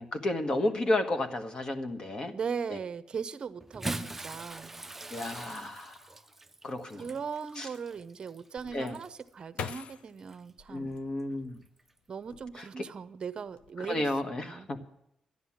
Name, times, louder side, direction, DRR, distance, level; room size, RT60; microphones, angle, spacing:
voice 1, 0.0-2.3 2.7-2.8 5.1-6.0 6.6-7.1 7.6-7.7 8.7-9.0 10.7-11.6 12.6-12.8 13.8-14.9, left 2 dB, 40° left, 6 dB, 1.4 m, -32 dB
voice 2, 2.3-4.7 5.0-5.1 7.0-10.9 12.1-14.1 14.4-14.7, right 6 dB, 45° right, 14 dB, 0.7 m, -38 dB
Bathtub (filling or washing) / Splash splatter, 3.6-9.3 10.2-10.4 11.8-11.9, right 2 dB, 15° right, 0.5 m, -42 dB
sound 1, 8.6-11.7 12.2-12.9 13.2-13.7, left 7 dB, 80° left, 0.8 m, -43 dB
13.0 x 10.0 x 7.3 m, 0.81 s
cardioid pair, 115°, 2 cm